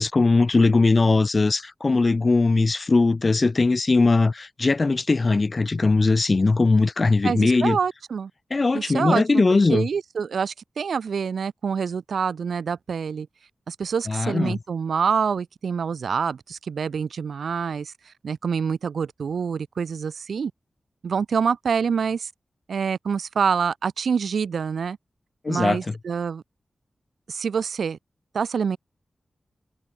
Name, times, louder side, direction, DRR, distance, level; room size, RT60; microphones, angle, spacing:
voice 1, 0.0-7.8 8.5-9.9 14.1-14.6 25.4-25.8, left 3 dB, 45° left, 1.5 m, -20 dB
voice 2, 7.2-8.3 8.7-9.4 9.7-13.3 13.7-17.9 18.2-20.5 21.0-22.3 22.7-25.0 25.5-26.4 27.3-28.0 28.3-28.8, right 6 dB, 85° right, 2.5 m, -26 dB
cardioid pair, 60°, 0 cm